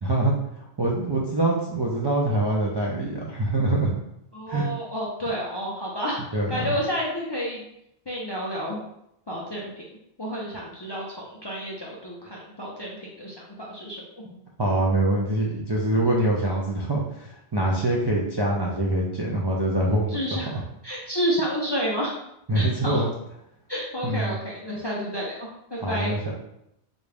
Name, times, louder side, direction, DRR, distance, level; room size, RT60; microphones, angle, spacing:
voice 1, 0.0-4.0 4.5-4.7 6.3-6.8 14.2-14.3 14.6-20.6 22.5-23.1 24.0-24.4 25.8-26.3, right 1 dB, 40° right, -4 dB, 0.3 m, -24 dB
voice 2, 4.3-7.6 8.1-8.8 9.3-9.8 10.2-14.0 20.1-20.6 20.8-22.1 22.5-23.1 23.7-26.1, equal, 35° left, -4 dB, 0.4 m, -30 dB
4.0 x 2.3 x 3.3 m, 0.79 s
omnidirectional pair, 1.1 m